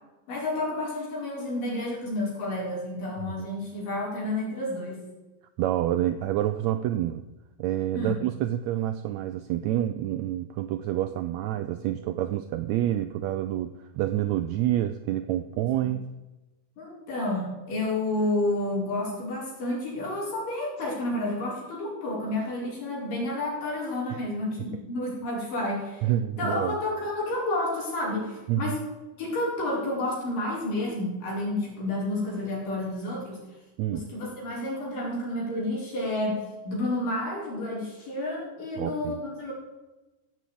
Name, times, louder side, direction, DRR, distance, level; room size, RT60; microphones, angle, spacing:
voice 1, 0.3-5.0 7.9-8.2 15.8-15.9 16.8-26.1 26.4-28.8 29.2-33.4 33.9-39.5, left 1 dB, 85° left, -4 dB, 6.0 m, -30 dB
voice 2, 5.6-7.2 7.6-16.1 24.1-24.2 24.6-24.7 26.0-26.8 28.5-28.8 33.8-34.1 38.8-39.2, right 12 dB, 85° right, 10 dB, 1.6 m, -28 dB
15.5 x 6.2 x 8.5 m, 1.1 s
omnidirectional pair, 3.7 m